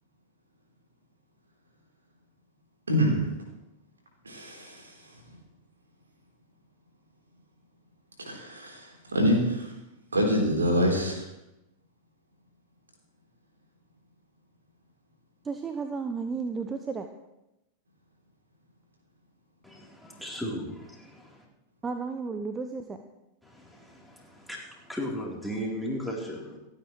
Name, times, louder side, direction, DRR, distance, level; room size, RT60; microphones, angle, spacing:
voice 1, 2.9-3.3 4.2-5.0 8.3-9.7 10.1-11.2, equal, 75° right, 0 dB, 3.9 m, -26 dB
voice 2, 15.4-17.1 21.8-23.0, right 4 dB, 15° right, 7 dB, 0.9 m, -33 dB
voice 3, 19.6-21.4 23.4-26.6, equal, ahead, -2 dB, 3.8 m, -36 dB
28.0 x 9.5 x 3.3 m, 0.92 s
figure-of-eight pair, 90°, 0 cm